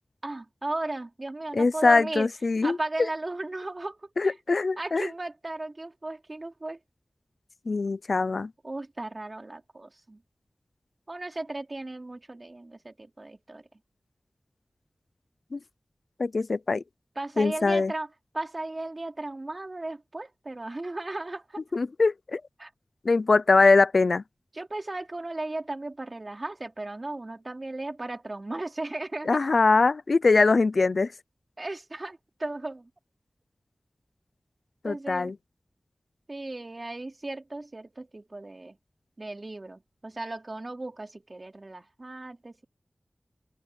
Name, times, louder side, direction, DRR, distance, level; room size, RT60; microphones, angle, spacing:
voice 1, 0.2-2.3 2.6-4.3 4.8-6.8 8.6-10.2 11.1-13.7 17.1-18.1 18.3-21.7 22.6-22.7 24.5-29.4 31.6-32.9 34.8-35.3 36.3-38.8 39.2-42.6, right 2 dB, 40° right, 4.5 m, -36 dB
voice 2, 1.5-2.8 4.2-5.1 7.7-8.5 15.5-15.6 16.2-16.8 17.4-17.9 21.7-22.4 23.0-24.2 29.3-31.1 34.8-35.3, left 3 dB, 70° left, 0.6 m, -22 dB
open air
wide cardioid pair, 65°, 0 cm